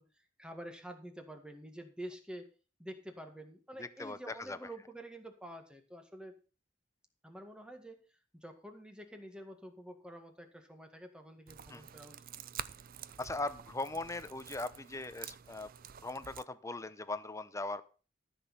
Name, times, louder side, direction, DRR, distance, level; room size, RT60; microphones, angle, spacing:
voice 1, 0.0-2.5 2.8-6.3 7.2-8.0 8.3-12.2, right 1 dB, 5° right, 5 dB, 1.8 m, -48 dB
voice 2, 3.8-4.6 11.7-11.8 13.2-15.7 16.0-17.8, left 2 dB, 15° left, 13 dB, 0.7 m, -39 dB
sound 1, 11.5-16.4, right 9 dB, 50° right, 0.5 m, -48 dB
13.5 x 6.3 x 5.6 m, 0.36 s
head